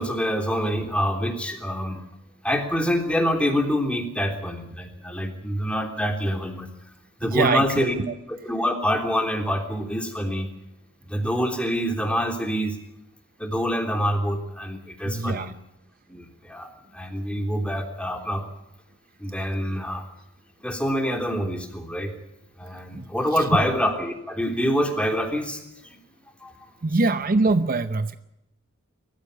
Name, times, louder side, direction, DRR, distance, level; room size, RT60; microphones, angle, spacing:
voice 1, 0.0-2.0 2.4-6.7 7.2-8.0 8.3-10.5 11.1-12.8 13.4-15.5 16.1-18.4 19.2-20.0 20.6-22.1 22.6-26.0 26.4-26.5, equal, 5° left, 3 dB, 3.4 m, -26 dB
voice 2, 7.3-8.1 15.0-15.5 22.9-23.1 23.3-23.4 26.8-28.2, right 3 dB, 45° right, 11 dB, 0.8 m, -24 dB
23.0 x 14.5 x 8.4 m, 0.88 s
head